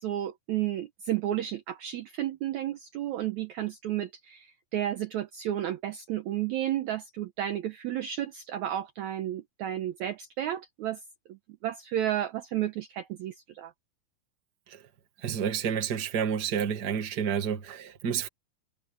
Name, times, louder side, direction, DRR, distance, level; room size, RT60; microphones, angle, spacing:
voice 1, 0.0-11.0 11.6-13.7, right 12 dB, 70° right, 1.9 m, -32 dB
voice 2, 15.2-18.3, right 7 dB, 40° right, 1.7 m, -29 dB
omnidirectional pair, 4.1 m